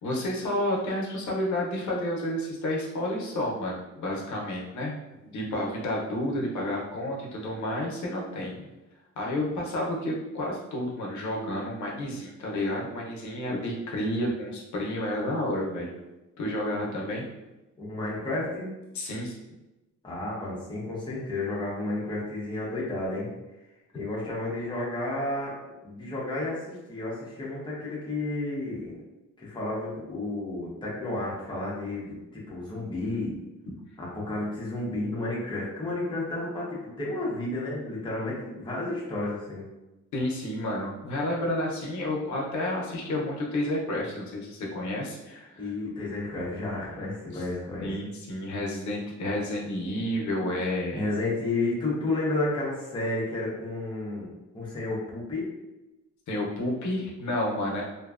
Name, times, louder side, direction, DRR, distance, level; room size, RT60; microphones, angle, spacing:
voice 1, 0.0-8.6 9.2-15.9 16.4-17.3 18.9-19.3 33.7-33.8 40.1-45.7 47.3-47.4 47.8-51.1 56.3-57.8, left 1 dB, 75° left, -2 dB, 0.6 m, -30 dB
voice 2, 17.8-18.7 20.0-23.3 23.9-25.5 25.8-28.9 29.4-32.2 32.5-33.3 34.0-39.6 45.6-47.9 50.9-54.3 54.5-55.5, left 2 dB, 15° left, -6 dB, 0.7 m, -31 dB
2.6 x 2.1 x 2.3 m, 1.0 s
wide cardioid pair, 150°, 29 cm